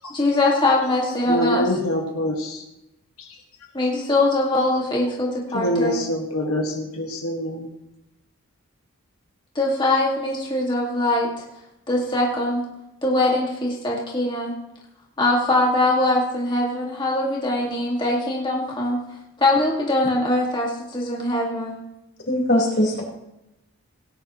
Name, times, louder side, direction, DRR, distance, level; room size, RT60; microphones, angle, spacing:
voice 1, 0.1-1.7 3.7-6.0 9.6-11.3 11.9-12.6 13.0-14.5 15.2-19.0 19.4-21.8, left 2 dB, 20° left, -3 dB, 2.1 m, -22 dB
voice 2, 1.3-2.6 5.5-7.7, equal, 85° left, 0 dB, 1.8 m, -25 dB
voice 3, 22.3-23.0, left 1 dB, 50° left, -2 dB, 4.7 m, -20 dB
18.5 x 10.5 x 3.1 m, 0.90 s
head